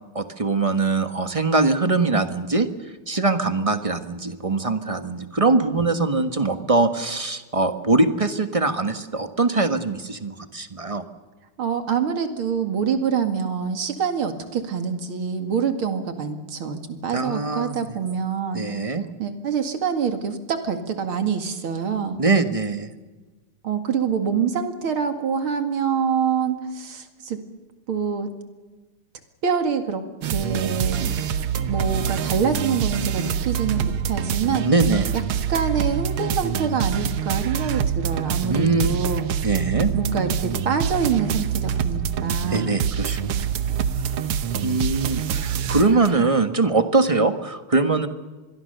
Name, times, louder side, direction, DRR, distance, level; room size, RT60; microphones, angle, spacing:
voice 1, 0.1-11.0 17.1-17.8 18.5-19.0 22.2-22.9 34.7-35.1 38.5-39.0 39.4-39.9 42.5-43.5 44.6-48.1, right 3 dB, 20° right, 8 dB, 1.1 m, -22 dB
voice 2, 11.6-18.7 19.2-22.2 23.6-27.4 27.9-28.3 29.4-31.1 31.6-34.7 35.5-39.2 39.9-42.8, right 6 dB, 70° right, 7 dB, 3.0 m, -25 dB
sound 1, 30.2-46.3, right 8 dB, 90° right, 2.0 m, -25 dB
26.0 x 22.0 x 6.8 m, 1.3 s
omnidirectional pair, 2.4 m